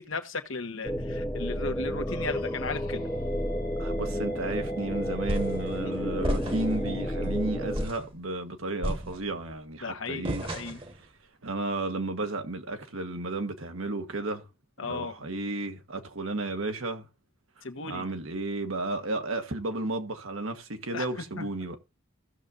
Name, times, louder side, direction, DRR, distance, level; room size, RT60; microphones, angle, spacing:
voice 1, 0.0-3.1 9.8-10.8 14.8-15.1 17.6-18.1 20.9-21.1 21.4-21.5, left 4 dB, 70° left, 1.2 m, -35 dB
sound 1, 0.8-7.9, equal, 10° left, 0.7 m, -31 dB
sound 2, 2.1-7.3, left 2 dB, 45° left, 1.6 m, -46 dB
voice 2, 3.8-10.4 10.8-10.9 11.4-14.4 14.9-17.0 17.9-21.8, right 2 dB, 80° right, 1.3 m, -33 dB
sound 3, 5.3-5.7 6.2-6.8 7.2-7.4 7.7-8.1 8.8-9.5 10.2-11.0, equal, 25° right, 1.2 m, -32 dB
16.0 x 6.7 x 2.5 m
head